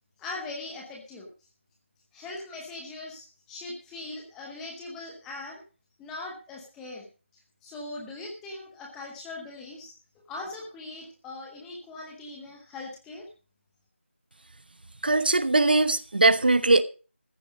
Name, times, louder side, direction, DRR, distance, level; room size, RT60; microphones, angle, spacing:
voice 1, 0.2-1.3 2.1-5.6 6.0-7.1 7.6-9.9 10.3-13.2, left 2 dB, 5° left, 0.9 m, -40 dB
voice 2, 15.0-16.8, right 2 dB, 50° right, 0.9 m, -20 dB
14.5 x 9.3 x 4.9 m
figure-of-eight pair, 175°, 7 cm